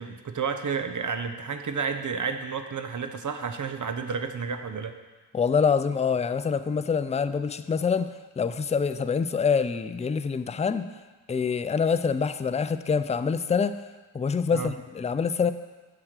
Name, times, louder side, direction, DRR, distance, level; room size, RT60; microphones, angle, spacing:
voice 1, 0.0-5.0 14.5-14.7, right 5 dB, 45° right, 8 dB, 0.8 m, -31 dB
voice 2, 5.3-10.9 11.3-13.8 14.1-15.5, left 6 dB, 15° left, 12 dB, 0.4 m, -25 dB
7.3 x 4.7 x 6.6 m, 1.2 s
supercardioid pair, 45°, 43 cm